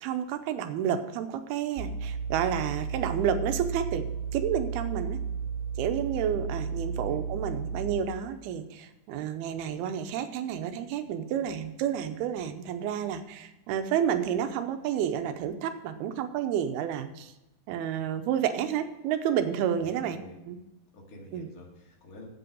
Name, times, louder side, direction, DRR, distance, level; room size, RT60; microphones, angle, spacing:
voice 1, 0.0-4.1 4.3-5.2 5.8-17.3 17.7-20.2 20.5-20.6 21.3-21.5, right 9 dB, 90° right, 8 dB, 2.7 m, -30 dB
sound 1, 1.8-8.0, right 5 dB, 70° right, 3.0 m, -33 dB
voice 2, 19.8-20.4 20.9-22.2, left 1 dB, 30° left, -1 dB, 1.7 m, -49 dB
8.4 x 7.8 x 6.3 m, 0.97 s
omnidirectional pair, 4.5 m